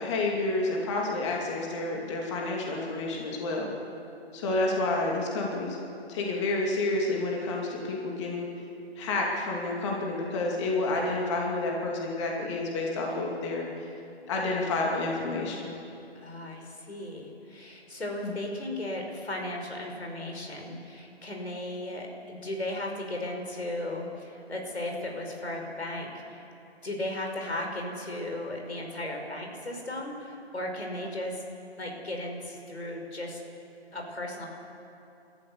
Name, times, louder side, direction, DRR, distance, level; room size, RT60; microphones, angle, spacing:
voice 1, 0.0-3.7 4.3-5.8 6.1-8.5 9.0-13.9 14.3-15.7 18.2-18.4, left 2 dB, 25° left, -1 dB, 2.6 m, -29 dB
voice 2, 16.2-26.4 26.8-31.4 31.8-33.4 33.9-34.5, left 1 dB, 80° left, 1 dB, 5.2 m, -36 dB
28.5 x 13.5 x 7.1 m, 2.8 s
figure-of-eight pair, 150°, 32 cm